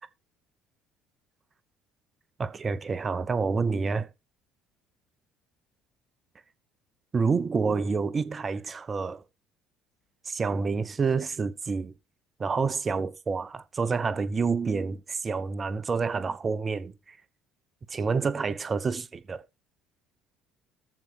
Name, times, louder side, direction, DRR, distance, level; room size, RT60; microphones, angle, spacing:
voice 1, 2.4-4.1 7.1-9.2 10.3-11.9 12.4-16.9 17.9-19.4, right 4 dB, 30° right, 0.9 m, -28 dB
13.5 x 4.9 x 4.7 m
figure-of-eight pair, 55°, 0 cm